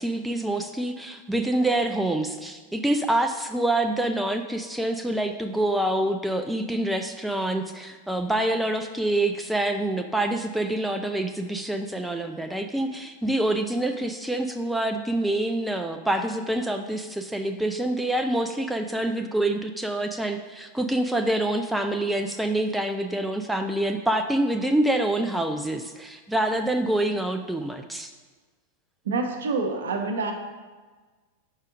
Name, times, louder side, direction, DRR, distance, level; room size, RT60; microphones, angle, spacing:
voice 1, 0.0-28.1, right 1 dB, 5° right, 5 dB, 0.4 m, -26 dB
voice 2, 29.0-30.3, right 3 dB, 65° right, 4 dB, 0.9 m, -27 dB
5.5 x 4.8 x 6.0 m, 1.3 s
figure-of-eight pair, 90°, 0 cm